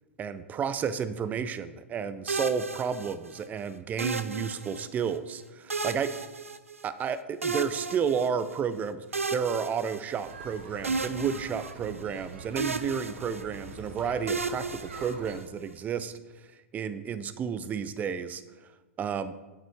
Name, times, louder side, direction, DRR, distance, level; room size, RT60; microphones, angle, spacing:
voice 1, 0.2-6.1 6.8-16.2 16.7-18.4 19.0-19.3, right 7 dB, 20° right, 13 dB, 0.6 m, -31 dB
sound 1, 2.3-3.4 4.0-5.1 5.7-7.1 7.4-8.6 9.1-10.5 10.8-12.2 12.6-13.8 14.3-15.6, right 4 dB, 85° right, 0.5 m, -34 dB
sound 2, 10.2-15.3, right 3 dB, 65° right, 1.4 m, -45 dB
9.1 x 9.1 x 3.5 m, 1.2 s
figure-of-eight pair, 100°, 7 cm